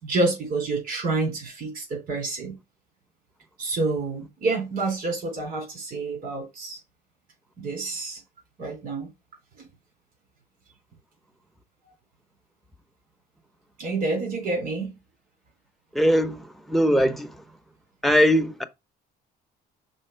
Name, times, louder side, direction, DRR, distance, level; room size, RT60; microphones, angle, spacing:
voice 1, 0.0-2.5 3.6-6.8 7.6-8.2 8.6-9.1 9.6-9.7 13.8-14.9, right 3 dB, 60° right, 3.6 m, -28 dB
voice 2, 15.9-17.4 18.0-18.6, equal, ahead, 0.8 m, -21 dB
5.5 x 4.2 x 5.6 m
cardioid pair, 110°, 17 cm